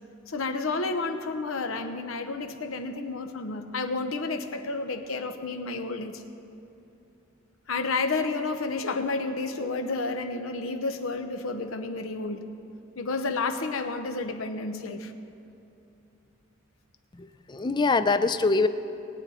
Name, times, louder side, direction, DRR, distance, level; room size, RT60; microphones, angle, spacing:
voice 1, 0.3-6.2 7.7-12.5 13.0-15.1, left 3 dB, 80° left, 8 dB, 0.8 m, -31 dB
voice 2, 17.2-18.7, left 3 dB, 20° left, 12 dB, 0.4 m, -24 dB
20.0 x 9.0 x 4.2 m, 2.7 s
head